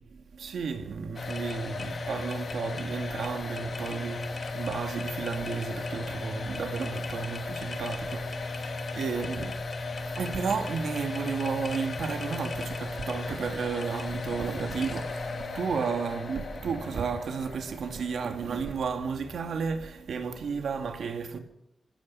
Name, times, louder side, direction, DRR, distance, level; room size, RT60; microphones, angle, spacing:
voice 1, 0.3-9.5 9.9-21.4, right 5 dB, 70° right, 2.3 m, -33 dB
sound 1, 1.1-19.9, left 3 dB, 45° left, 2.0 m, -36 dB
27.5 x 17.0 x 5.6 m
wide cardioid pair, 170°, 0 cm